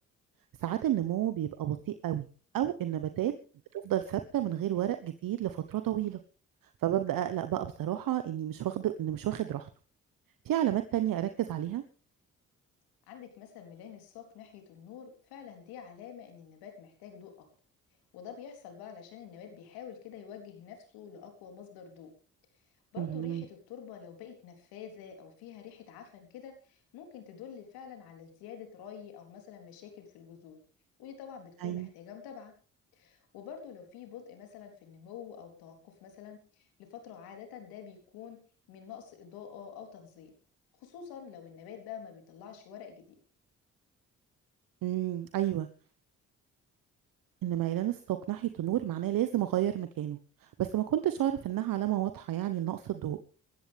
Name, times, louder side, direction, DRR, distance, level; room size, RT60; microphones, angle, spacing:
voice 1, 0.6-2.3 2.5-3.3 3.8-6.2 6.8-9.7 10.4-11.8 23.0-23.4 31.6-31.9 44.8-45.7 47.4-50.2 50.6-53.2, right 12 dB, 70° right, 10 dB, 1.2 m, -31 dB
voice 2, 13.1-17.5 18.1-22.1 22.9-30.6 31.0-32.5 32.9-38.4 38.7-40.3 40.8-43.1, left 8 dB, 85° left, 4 dB, 3.9 m, -47 dB
20.5 x 14.0 x 3.6 m, 0.39 s
supercardioid pair, 50°, 35 cm